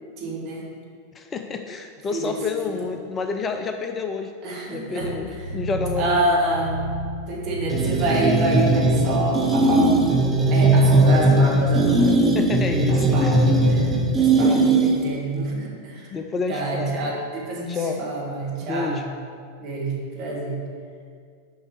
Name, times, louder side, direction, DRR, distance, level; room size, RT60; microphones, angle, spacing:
voice 1, 0.2-0.6 2.1-2.3 2.8-2.9 4.4-5.1 6.0-6.8 7.3-9.9 10.5-12.2 12.9-13.9 14.2-16.1 16.5-19.1 19.6-20.6, right 2 dB, 40° right, -3 dB, 2.1 m, -27 dB
voice 2, 1.1-4.3 4.7-6.4 12.0-13.5 14.4-14.7 16.1-17.0 17.7-18.1 18.6-19.1, left 4 dB, 20° left, 6 dB, 0.4 m, -29 dB
sound 1, 5.0-14.2, right 1 dB, 75° right, 0.9 m, -31 dB
sound 2, 7.7-15.2, right 2 dB, 15° right, 0.9 m, -19 dB
7.1 x 5.1 x 6.2 m, 2.1 s
figure-of-eight pair, 90°, 0 cm